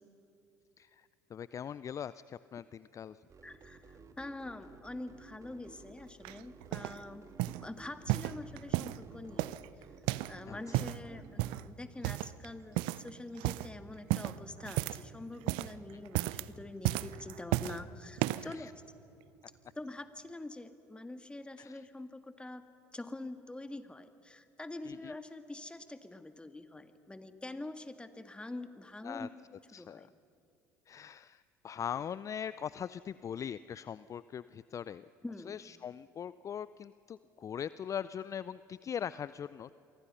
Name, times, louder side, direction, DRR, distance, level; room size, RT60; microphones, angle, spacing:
voice 1, 0.8-3.2 10.5-11.2 18.3-18.7 21.6-21.8 24.9-25.2 29.0-29.3 29.7-30.1 30.9-35.1 35.5-39.7, left 8 dB, 35° left, 17 dB, 0.5 m, -41 dB
sound 1, 3.3-11.6, right 4 dB, 35° right, 2.3 m, -55 dB
voice 2, 3.4-9.6 10.3-18.7 19.8-22.6 22.9-29.3 29.7-30.1 35.2-35.6, left 2 dB, 10° left, 9 dB, 1.8 m, -45 dB
sound 2, 6.2-7.0 7.4-7.7 8.1-9.0 9.4-10.4 10.6-11.0 11.4-11.7 12.0-12.5 12.8-13.1 13.4-13.7 14.1-15.1 15.4-15.8 16.1-16.5 16.8-17.8 18.2-18.5 19.2-19.3, right 19 dB, 65° right, 0.6 m, -33 dB
28.5 x 24.0 x 5.6 m, 2.9 s
hypercardioid pair, 65°, 9 cm